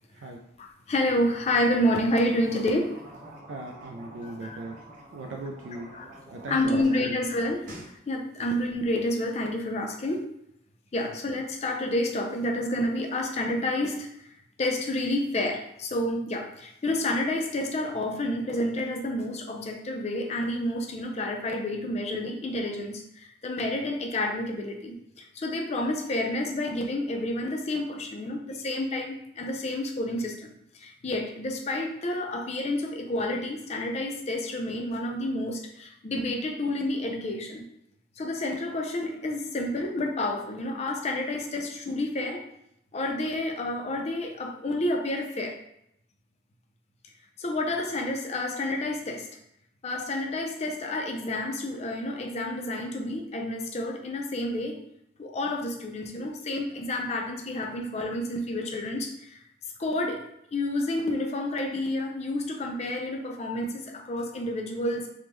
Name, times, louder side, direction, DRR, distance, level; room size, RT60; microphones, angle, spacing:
voice 1, 0.6-2.9 4.4-4.6 5.9-6.1 6.5-10.2 10.9-14.3 14.6-37.7 38.2-42.4 42.9-45.6 47.4-49.3 49.8-54.8 55.2-59.4 59.8-60.2 60.5-65.1, left 1 dB, 35° left, 2 dB, 0.4 m, -29 dB
sound 1, 2.0-7.1 7.4-7.9, right 1 dB, 40° right, 0.8 m, -47 dB
voice 2, 3.5-4.8 5.1-6.0 6.3-7.2 8.4-8.5 11.0-11.1, right 2 dB, 65° right, 1 dB, 0.3 m, -38 dB
3.4 x 2.1 x 3.1 m, 0.78 s
head